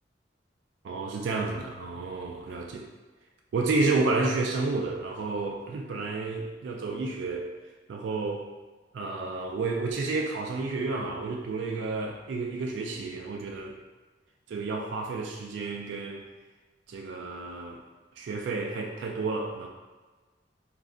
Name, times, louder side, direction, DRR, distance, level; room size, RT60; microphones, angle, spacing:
voice 1, 0.8-2.9 3.5-7.5 7.9-8.5 8.9-13.8 14.5-16.2 16.9-17.8 18.2-19.7, right 3 dB, 80° right, 0 dB, 0.3 m, -31 dB
2.4 x 2.1 x 3.6 m, 1.3 s
head